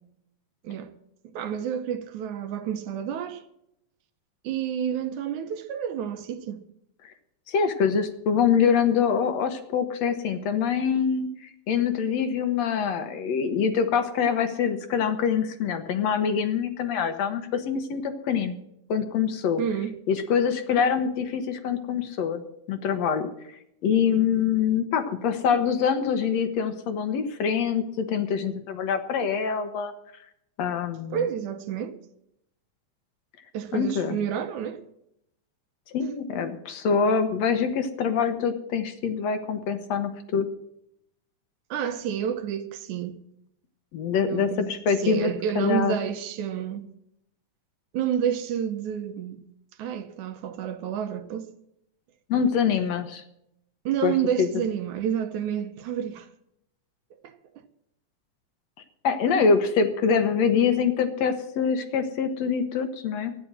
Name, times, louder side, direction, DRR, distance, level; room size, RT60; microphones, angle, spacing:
voice 1, 1.3-3.4 4.4-6.6 19.6-20.0 31.1-32.0 33.5-34.8 41.7-43.2 44.3-46.9 47.9-49.4 49.8-51.5 53.9-56.3 57.2-57.4, right 9 dB, 75° right, 2.4 m, -29 dB
voice 2, 7.5-18.6 18.9-19.6 20.1-22.4 22.7-23.3 23.8-29.9 30.6-31.3 33.7-34.2 35.9-40.5 43.9-46.0 52.3-53.2 54.0-54.5 59.0-63.4, left 6 dB, 65° left, 2.1 m, -25 dB
12.0 x 9.5 x 7.5 m
omnidirectional pair, 3.5 m